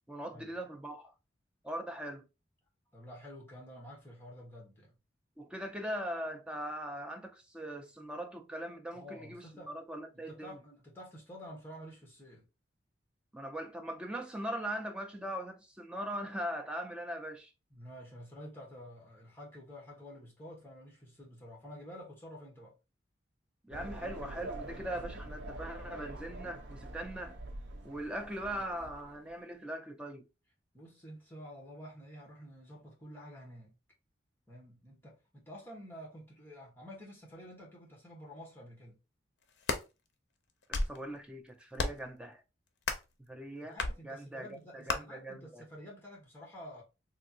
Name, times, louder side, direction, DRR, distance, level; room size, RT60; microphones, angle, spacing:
voice 1, 0.1-1.1 1.6-2.2 5.4-10.6 13.3-17.5 23.6-27.4 27.8-30.3 40.7-42.4 43.3-43.8 44.0-45.6, right 1 dB, 5° right, 0.3 m, -40 dB
voice 2, 2.9-4.9 8.9-9.7 10.1-12.4 17.7-22.7 30.7-33.8 34.5-39.0 43.6-46.8, equal, 10° left, 1.1 m, -50 dB
sound 1, 23.7-29.3, right 1 dB, 70° right, 0.5 m, -45 dB
sound 2, 39.4-39.9 40.5-41.0 41.7-42.1 42.8-43.1 43.8-44.0 44.9-45.0, left 3 dB, 65° left, 0.5 m, -33 dB
3.3 x 2.5 x 2.7 m
head